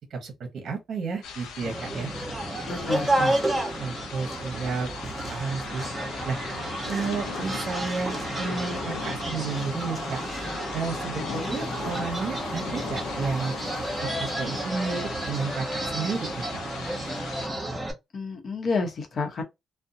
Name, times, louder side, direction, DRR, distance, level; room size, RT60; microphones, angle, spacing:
voice 1, 0.1-2.1 3.8-4.9 5.3-5.8 6.3-6.4 6.9-10.2 10.7-13.5 14.0-16.6, right 4 dB, 60° right, 0.8 m, -32 dB
sound 1, 1.2-17.5, left 6 dB, 85° left, 0.5 m, -38 dB
sound 2, 1.6-17.9, right 1 dB, 20° right, 0.9 m, -31 dB
voice 2, 2.7-3.4 11.2-11.6 18.1-19.4, left 4 dB, 50° left, 0.8 m, -30 dB
2.5 x 2.1 x 2.6 m
cardioid pair, 90°, 0 cm